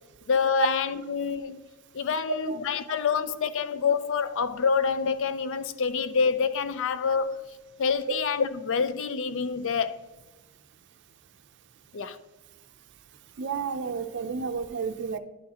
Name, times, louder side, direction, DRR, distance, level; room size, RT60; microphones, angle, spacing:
voice 1, 0.3-1.6 1.9-7.4 7.8-10.0 11.9-12.2, left 6 dB, 60° left, 0.4 m, -27 dB
voice 2, 13.4-15.2, right 5 dB, 55° right, 0.5 m, -31 dB
11.0 x 6.4 x 2.8 m
head